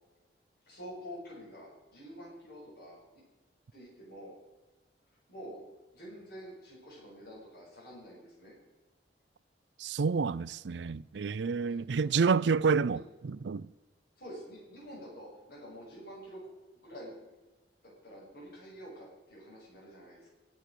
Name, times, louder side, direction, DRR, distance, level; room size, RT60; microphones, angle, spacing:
voice 1, 0.6-3.0 3.7-4.4 5.3-5.6 5.9-8.6 12.1-12.2 12.9-13.0 14.2-16.5 16.8-17.1 17.8-20.3, equal, 60° left, 7.0 m, -47 dB
voice 2, 9.8-13.7, right 5 dB, 85° right, 0.5 m, -29 dB
22.5 x 7.7 x 6.8 m
head